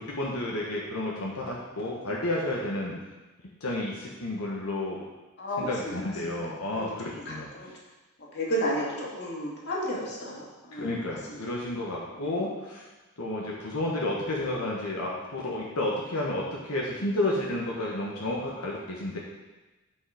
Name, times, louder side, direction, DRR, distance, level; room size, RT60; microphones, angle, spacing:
voice 1, 0.2-2.9 3.6-5.0 5.6-7.5 10.7-12.8 13.2-19.2, left 1 dB, 85° left, -4 dB, 1.4 m, -31 dB
voice 2, 5.4-6.1 6.7-6.9 7.1-7.7 8.3-11.4 12.2-12.5, equal, 55° left, -4 dB, 2.1 m, -33 dB
8.7 x 5.6 x 5.0 m, 1.1 s
head